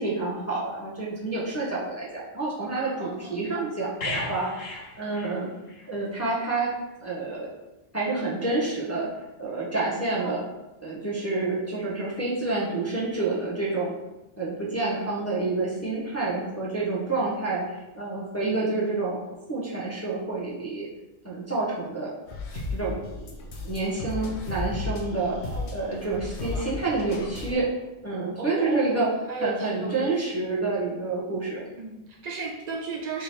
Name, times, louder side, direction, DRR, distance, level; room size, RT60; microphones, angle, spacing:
voice 1, 0.0-4.6 5.0-5.5 5.9-6.7 7.0-7.6 7.9-9.1 9.4-10.4 10.8-13.9 14.4-19.2 19.5-20.9 21.2-22.1 22.5-23.4 23.6-27.7 28.0-29.1 29.4-31.7, right 3 dB, 15° left, -7 dB, 0.7 m, -28 dB
voice 2, 3.0-3.4 10.2-10.4 25.5-25.7 28.4-29.0 29.3-30.1 30.4-30.5 31.8-33.2, right 4 dB, 80° right, 1 dB, 0.3 m, -34 dB
sound 1, 4.0-5.9 6.2-6.4, left 2 dB, 85° left, 1.3 m, -35 dB
sound 2, 22.3-27.5, left 3 dB, 65° left, 0.9 m, -34 dB
3.6 x 2.9 x 4.3 m, 1.0 s
omnidirectional pair, 1.3 m